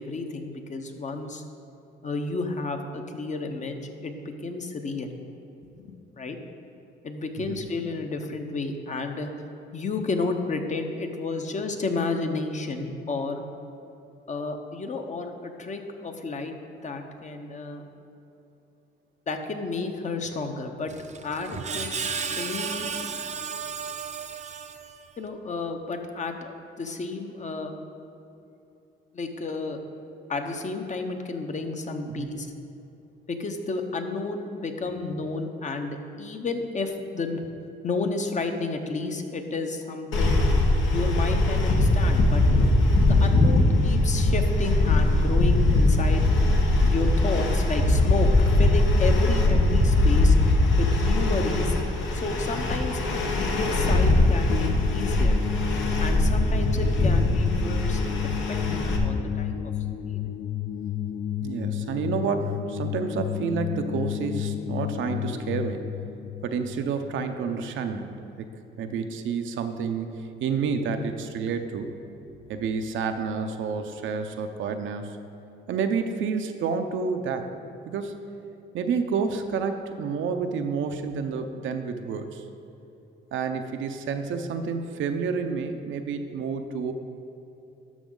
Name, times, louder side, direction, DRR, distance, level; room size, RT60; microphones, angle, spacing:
voice 1, 0.0-1.4 2.0-5.1 5.8-6.4 7.0-9.3 9.7-13.4 14.3-16.5 16.8-17.9 19.3-20.9 21.2-22.9 25.2-26.5 26.8-27.7 29.1-29.8 30.3-32.5 33.3-37.4 37.8-40.4 40.9-42.7 43.1-46.3 46.9-50.4 50.8-51.8 52.1-55.4 56.0-59.7 60.0-60.2, left 3 dB, 40° left, 5 dB, 0.9 m, -31 dB
Screech, 20.9-25.2, right 6 dB, 35° right, 0.6 m, -33 dB
sound 1, 40.1-59.0, left 2 dB, 75° left, 1.2 m, -21 dB
sound 2, 54.5-67.6, left 11 dB, 55° left, 0.4 m, -32 dB
voice 2, 61.4-65.8 66.4-68.1 68.4-68.5 68.8-70.1 70.4-71.9 72.5-75.2 75.7-77.5 77.9-78.2 78.7-82.4 83.3-86.9, right 5 dB, 75° right, 6 dB, 0.7 m, -29 dB
12.5 x 6.1 x 3.9 m, 2.8 s
cardioid pair, 90°, 20 cm